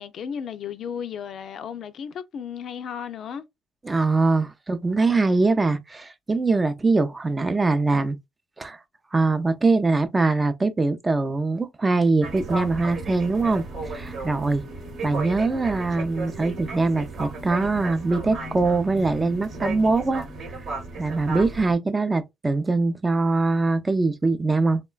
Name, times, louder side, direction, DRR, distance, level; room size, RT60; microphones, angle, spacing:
voice 1, 0.0-3.4, left 7 dB, 60° left, 0.3 m, -34 dB
voice 2, 3.8-8.2 8.6-8.8 9.1-14.6 15.0-20.2 21.0-24.8, right 3 dB, 25° right, 0.4 m, -22 dB
sound 1, 12.2-21.7, right 2 dB, 55° right, 0.9 m, -34 dB
3.0 x 2.1 x 2.2 m
supercardioid pair, 80°, 0 cm